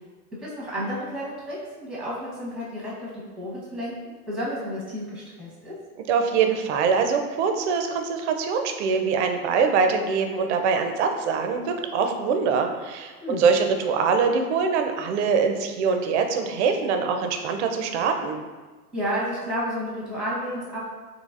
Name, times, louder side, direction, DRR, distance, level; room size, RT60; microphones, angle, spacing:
voice 1, 0.4-5.7 13.2-13.4 18.9-20.8, equal, ahead, -6 dB, 0.7 m, -31 dB
voice 2, 6.1-18.4, right 5 dB, 50° right, 5 dB, 0.4 m, -23 dB
4.0 x 2.8 x 2.4 m, 1.3 s
hypercardioid pair, 135°, 46 cm